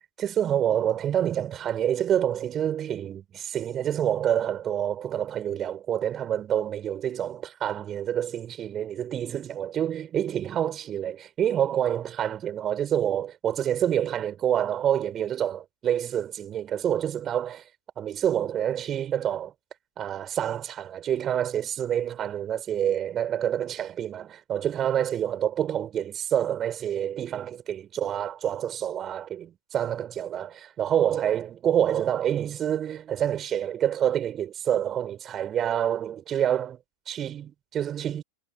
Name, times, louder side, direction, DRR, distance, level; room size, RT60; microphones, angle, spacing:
voice 1, 0.2-17.6 18.0-19.5 20.0-36.8 37.1-38.2, right 10 dB, 25° right, 6.7 m, -27 dB
figure-of-eight pair, 90°, 0 cm